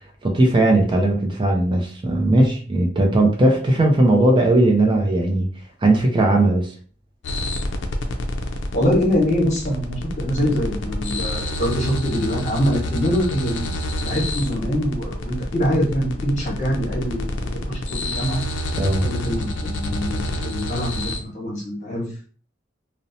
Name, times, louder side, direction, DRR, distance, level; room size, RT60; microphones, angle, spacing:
voice 1, 0.2-5.5 5.8-6.7 18.7-19.1, right 1 dB, 25° right, 1 dB, 0.4 m, -18 dB
sound 1, 7.2-21.2, left 1 dB, 75° left, 0.4 m, -28 dB
voice 2, 8.7-13.7 14.0-17.4 17.7-18.4 19.0-22.0, equal, 40° left, -2 dB, 1.0 m, -24 dB
2.6 x 2.0 x 2.6 m, 0.41 s
head